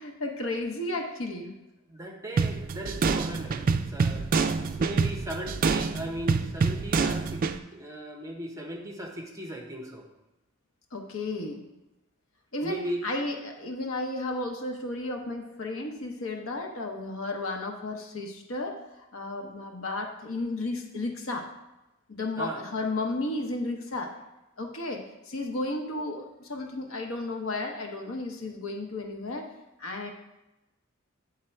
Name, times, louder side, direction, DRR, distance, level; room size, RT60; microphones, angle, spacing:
voice 1, 0.0-1.5 10.9-11.6 12.5-18.8 19.1-21.4 22.1-24.1 24.6-29.5 29.8-30.1, left 2 dB, 75° left, 3 dB, 0.9 m, -33 dB
voice 2, 1.9-4.2 4.6-7.5 7.7-10.1 12.6-13.0 22.4-22.6, right 1 dB, 15° right, 1 dB, 0.9 m, -37 dB
sound 1, 2.4-7.6, right 4 dB, 45° right, 0.3 m, -26 dB
8.6 x 3.7 x 4.5 m, 0.98 s
head